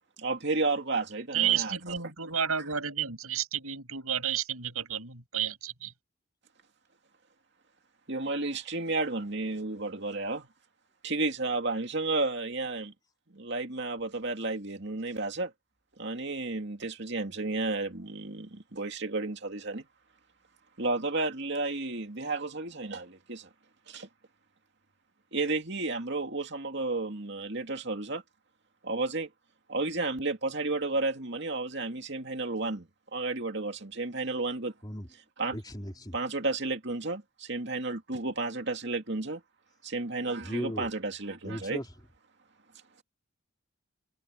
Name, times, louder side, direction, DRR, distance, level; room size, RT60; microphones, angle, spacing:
voice 1, 0.2-1.9 8.1-10.5 11.0-12.9 13.3-15.5 16.0-19.8 20.8-23.5 23.9-24.1 25.3-28.2 28.8-29.3 29.7-34.7 35.4-35.6 36.1-39.4 39.8-41.8, right 3 dB, 50° right, 2.6 m, -32 dB
voice 2, 1.3-5.9, right 9 dB, 80° right, 7.7 m, -31 dB
voice 3, 35.5-36.1 40.4-40.9 41.4-41.8, equal, 20° left, 4.0 m, -37 dB
head